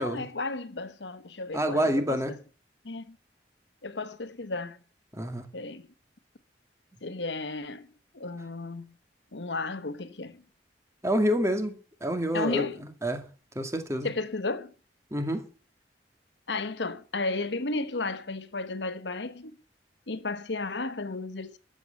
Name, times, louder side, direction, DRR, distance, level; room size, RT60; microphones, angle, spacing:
voice 1, 0.0-2.4 2.8-3.2 3.8-4.8 5.5-5.9 7.0-7.9 8.1-8.9 9.3-10.4 12.3-12.8 14.0-14.7 16.5-19.6 20.1-21.6, left 3 dB, 90° left, 1.2 m, -33 dB
voice 2, 1.5-2.3 5.1-5.5 11.0-12.7 13.0-13.2 13.6-14.1 15.1-15.5, equal, 15° right, 2.1 m, -27 dB
13.0 x 7.9 x 8.3 m
head